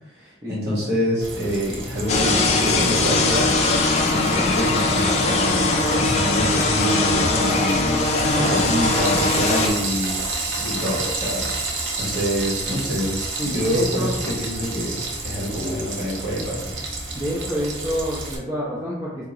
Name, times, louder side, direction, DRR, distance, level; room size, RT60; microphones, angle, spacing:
voice 1, 0.1-8.0 8.3-10.1 10.6-11.5 11.9-16.7, equal, 60° right, -6 dB, 1.3 m, -26 dB
Frying (food), 1.2-18.4, right 3 dB, 80° right, 0.6 m, -31 dB
sound 1, 2.1-9.7, left 3 dB, 35° left, 0.3 m, -20 dB
voice 2, 8.2-8.8 13.4-14.1 17.1-19.2, equal, 15° right, -8 dB, 0.6 m, -27 dB
3.6 x 2.3 x 2.9 m, 0.95 s
head